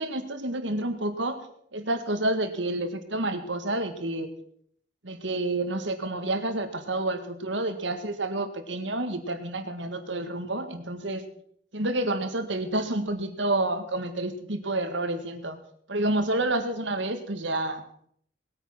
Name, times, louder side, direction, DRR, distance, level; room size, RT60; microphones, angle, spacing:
voice 1, 0.0-1.4 1.7-4.3 5.0-11.2 11.7-15.6 15.9-17.8, right 2 dB, 75° right, 8 dB, 1.8 m, -29 dB
19.5 x 9.2 x 6.1 m, 0.64 s
head